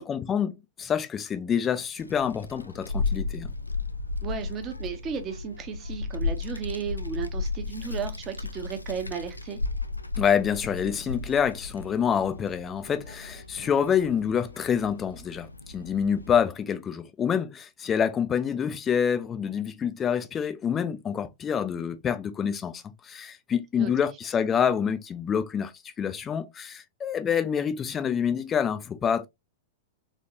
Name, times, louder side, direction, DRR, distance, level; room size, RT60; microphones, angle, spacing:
voice 1, 0.0-3.5 10.2-25.7 26.0-29.3, left 7 dB, 20° left, 0.6 m, -27 dB
Child speech kid speaking, 2.0-16.4, left 3 dB, 85° left, 0.4 m, -34 dB
voice 2, 4.2-9.6 23.8-23.9, right 7 dB, 30° right, 1.0 m, -34 dB
3.8 x 3.5 x 2.5 m
figure-of-eight pair, 100°, 0 cm